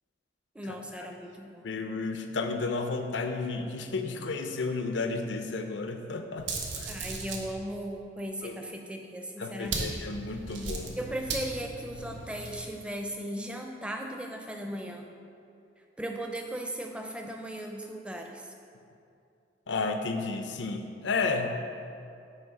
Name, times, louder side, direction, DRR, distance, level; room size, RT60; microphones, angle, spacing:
voice 1, 0.5-1.7 6.9-9.9 11.0-15.1 16.0-18.5, right 1 dB, 5° right, 2 dB, 0.5 m, -37 dB
voice 2, 1.6-6.5 6.8-7.0 8.4-8.6 9.4-10.9 19.7-21.6, left 3 dB, 80° left, 6 dB, 0.6 m, -32 dB
sound 1, 6.4-7.5 9.6-12.6, right 3 dB, 90° right, 0.9 m, -36 dB
9.0 x 3.2 x 5.3 m, 2.5 s
head